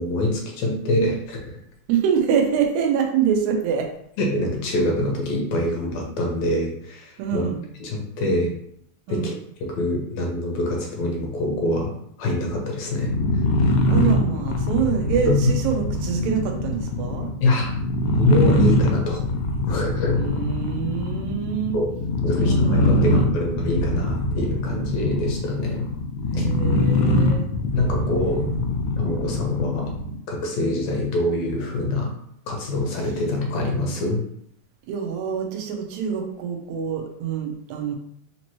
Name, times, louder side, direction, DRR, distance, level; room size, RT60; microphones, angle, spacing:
voice 1, 0.0-1.6 4.2-7.4 7.8-8.5 9.1-9.3 9.6-11.9 12.2-13.1 15.3-15.6 17.4-17.7 18.2-19.2 19.7-20.2 21.7-21.9 22.2-25.9 26.4-26.5 27.7-28.5 29.0-29.9 30.3-32.1 32.5-34.2, left 2 dB, 70° left, 0 dB, 2.0 m, -24 dB
voice 2, 1.9-3.9 7.2-7.6 9.1-9.3 13.9-17.3 20.2-21.8 22.4-23.2 26.3-27.5 28.3-28.5 34.9-37.9, right 7 dB, 75° right, 2 dB, 2.0 m, -25 dB
sound 1, 12.9-30.2, left 1 dB, 85° left, 2.1 m, -23 dB
5.1 x 2.9 x 2.9 m, 0.70 s
omnidirectional pair, 3.5 m